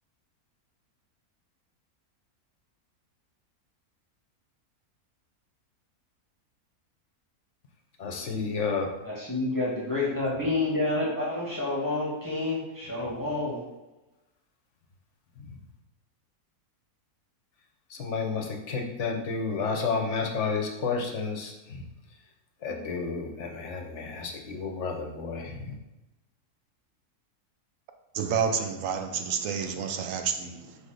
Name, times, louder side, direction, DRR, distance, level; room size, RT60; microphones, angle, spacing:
voice 1, 8.0-8.9 17.9-21.8 22.6-25.7, left 4 dB, 55° left, 2 dB, 1.1 m, -31 dB
voice 2, 9.0-13.6, left 2 dB, 15° left, -6 dB, 1.4 m, -29 dB
voice 3, 28.1-30.8, right 6 dB, 65° right, 6 dB, 1.0 m, -29 dB
5.3 x 4.1 x 4.9 m, 1.0 s
omnidirectional pair, 1.6 m